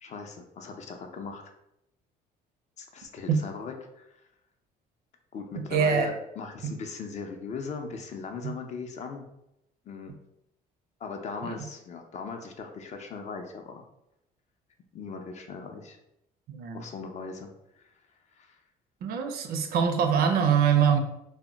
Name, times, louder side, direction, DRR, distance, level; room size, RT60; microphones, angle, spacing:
voice 1, 0.0-1.5 2.8-4.1 5.3-9.3 9.9-10.2 11.0-13.8 14.9-16.0 16.7-17.5 17.8-17.9 18.3-18.6, left 4 dB, 45° left, 4 dB, 0.4 m, -39 dB
voice 2, 5.7-6.1 6.6-6.7 8.4-8.5 11.4-11.6 16.5-16.8 19.0-21.0, right 7 dB, 65° right, 7 dB, 0.4 m, -24 dB
2.1 x 2.0 x 3.7 m, 0.83 s
cardioid pair, 110°, 17 cm